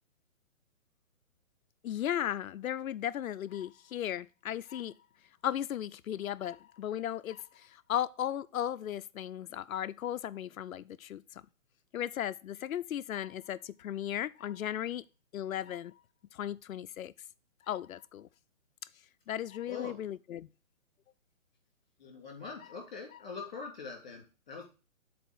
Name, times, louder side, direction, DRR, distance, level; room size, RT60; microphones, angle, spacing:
voice 1, 1.8-4.9 5.4-11.2 11.9-15.0 15.3-15.9 16.3-17.1 17.7-18.3 19.3-20.5, left 11 dB, 80° left, 0.6 m, -36 dB
voice 2, 19.7-20.0 22.0-24.6, left 4 dB, 35° left, 2.9 m, -43 dB
6.9 x 4.2 x 6.1 m
hypercardioid pair, 175°, 40 cm